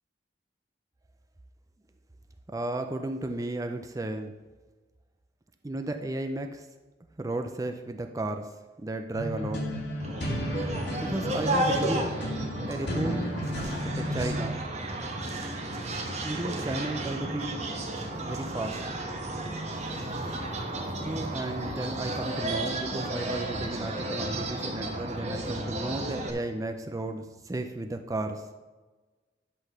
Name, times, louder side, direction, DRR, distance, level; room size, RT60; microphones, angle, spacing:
voice 1, 2.5-4.3 5.6-6.7 7.2-8.5 8.8-9.7 11.0-12.1 12.7-13.4 13.8-14.6 16.2-17.7 18.2-18.8 21.0-28.5, right 2 dB, 20° right, 6 dB, 0.4 m, -34 dB
sound 1, 9.1-14.5, equal, 70° left, 2.0 m, -33 dB
sound 2, 10.0-26.3, right 1 dB, 40° right, 1.1 m, -33 dB
11.0 x 4.0 x 6.6 m, 1.3 s
head